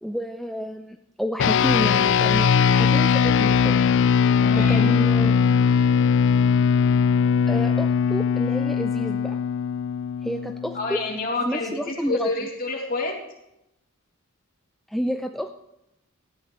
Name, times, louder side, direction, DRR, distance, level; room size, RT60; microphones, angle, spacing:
voice 1, 0.0-3.8 4.5-5.8 7.5-9.4 10.2-11.0 11.5-12.5 14.9-15.5, equal, ahead, 5 dB, 0.5 m, -30 dB
sound 1, 1.4-11.0, left 6 dB, 60° left, 0.4 m, -20 dB
voice 2, 4.4-4.9 10.7-13.2, left 2 dB, 45° left, 0 dB, 3.1 m, -28 dB
17.5 x 13.0 x 3.1 m, 0.84 s
head